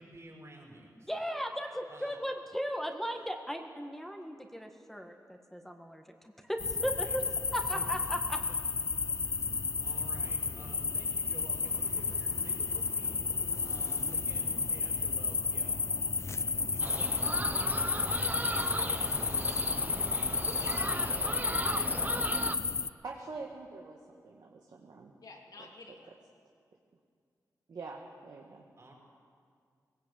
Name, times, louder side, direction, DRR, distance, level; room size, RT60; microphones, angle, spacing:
voice 1, 0.0-1.2 1.9-2.2 7.7-7.9 8.5-8.6 9.2-21.2 28.8-28.9, right 1 dB, 45° right, -1 dB, 5.8 m, -52 dB
voice 2, 0.9-8.4, equal, 5° left, 4 dB, 1.8 m, -37 dB
sound 1, 6.6-22.9, left 4 dB, 45° left, 0.6 m, -32 dB
sound 2, 16.8-22.6, right 2 dB, 25° right, 0.9 m, -37 dB
voice 3, 20.4-21.2 21.7-22.8 25.2-26.2, left 3 dB, 75° left, 0 dB, 3.0 m, -49 dB
voice 4, 23.0-25.1 25.6-25.7 27.7-28.6, right 3 dB, 75° right, 0 dB, 1.7 m, -45 dB
19.0 x 17.0 x 8.4 m, 2.2 s
cardioid pair, 65°, 7 cm